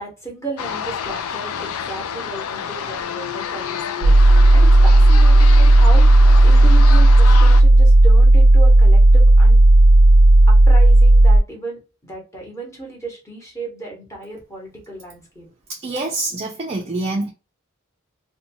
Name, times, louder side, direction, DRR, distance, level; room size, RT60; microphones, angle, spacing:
voice 1, 0.0-4.2 4.5-9.6 10.5-15.5, right 2 dB, 15° left, 1.1 m, -34 dB
sound 1, 0.6-7.6, left 7 dB, 85° left, 0.4 m, -29 dB
sound 2, 4.0-11.4, right 1 dB, 85° right, 0.4 m, -10 dB
voice 2, 15.7-17.3, right 2 dB, 30° right, 0.4 m, -26 dB
2.6 x 2.2 x 2.6 m
head